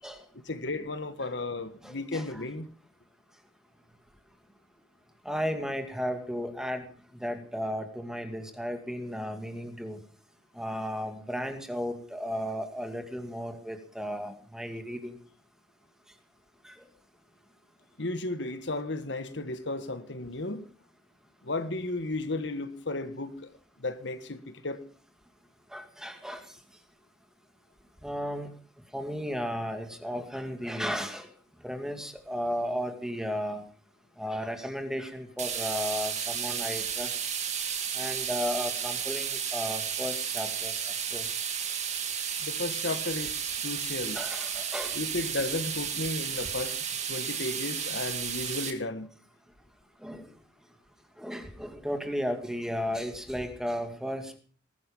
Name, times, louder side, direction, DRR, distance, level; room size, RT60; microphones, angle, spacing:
voice 1, 0.3-2.7 18.0-20.6 21.4-23.5 23.8-24.8 42.4-44.2 44.9-49.1, left 2 dB, 65° left, 1.6 m, -34 dB
voice 2, 1.8-2.4 5.2-6.8 7.1-10.0 10.5-15.2 16.6-16.8 25.7-26.5 28.0-28.5 28.9-31.3 31.6-33.6 34.2-37.1 37.9-41.4 44.1-45.0 50.0-50.3 51.2-54.4, equal, 5° right, 2.3 m, -34 dB
sound 1, 35.4-48.7, right 7 dB, 35° right, 2.7 m, -33 dB
20.5 x 12.5 x 5.5 m
head